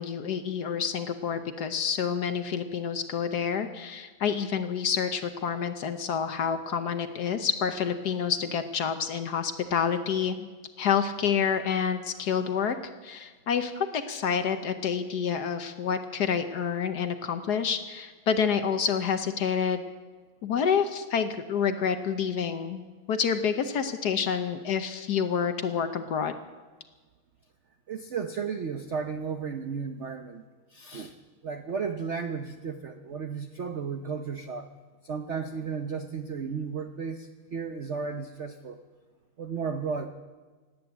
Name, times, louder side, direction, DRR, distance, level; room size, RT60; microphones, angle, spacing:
voice 1, 0.0-10.5 10.8-12.8 13.0-19.8 20.4-22.8 23.1-26.3, left 7 dB, 60° left, 8 dB, 1.2 m, -28 dB
voice 2, 27.9-30.4 30.7-31.1 31.4-34.7 35.0-38.8 39.4-40.1, right 5 dB, 70° right, 7 dB, 0.6 m, -34 dB
18.5 x 9.5 x 8.1 m, 1.4 s
omnidirectional pair, 2.3 m